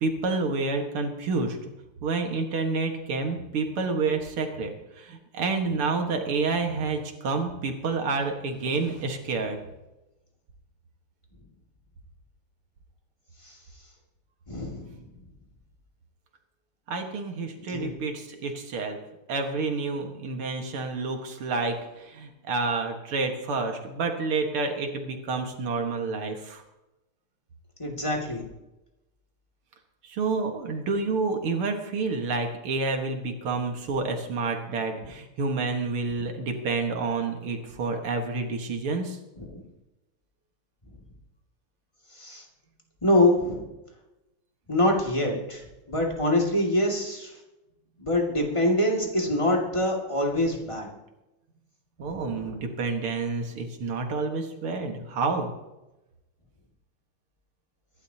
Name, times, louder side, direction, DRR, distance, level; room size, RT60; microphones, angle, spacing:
voice 1, 0.0-1.7 2.0-9.6 16.9-19.0 19.3-26.6 30.0-39.2 52.0-55.5, right 3 dB, 85° right, 4 dB, 2.5 m, -29 dB
voice 2, 14.5-15.1 17.6-17.9 27.8-28.5 39.4-39.6 42.1-42.4 43.0-43.7 44.7-47.4 48.0-50.9 52.0-52.6, left 1 dB, 15° left, 0 dB, 2.1 m, -25 dB
25.0 x 11.5 x 2.9 m, 0.99 s
omnidirectional pair, 2.3 m